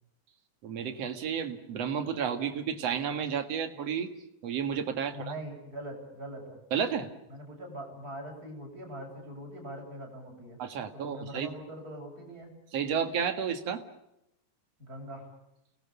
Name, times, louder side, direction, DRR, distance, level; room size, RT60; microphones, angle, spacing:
voice 1, 0.6-4.1 4.4-5.3 6.7-7.1 10.6-11.5 12.7-13.8, right 7 dB, 50° right, 7 dB, 2.6 m, -31 dB
voice 2, 5.1-6.6 7.3-10.6 10.9-12.5 14.8-15.3, right 1 dB, 25° right, 0 dB, 8.1 m, -42 dB
30.0 x 19.5 x 7.0 m, 0.84 s
omnidirectional pair, 4.1 m